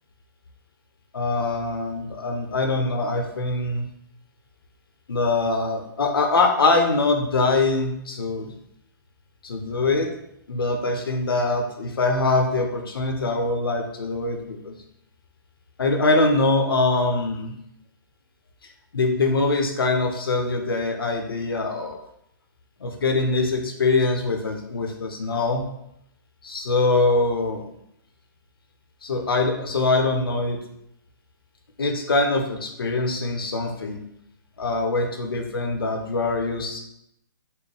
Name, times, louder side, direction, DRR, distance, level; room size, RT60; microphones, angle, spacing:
voice 1, 1.1-3.9 5.1-8.5 9.4-10.1 10.5-14.8 15.8-17.5 18.9-22.0 22.8-25.7 26.4-27.6 29.0-30.6 31.8-34.0 34.6-36.8, left 3 dB, 85° left, 3 dB, 0.8 m, -23 dB
4.4 x 2.2 x 3.4 m, 0.77 s
hypercardioid pair, 150°, 12 cm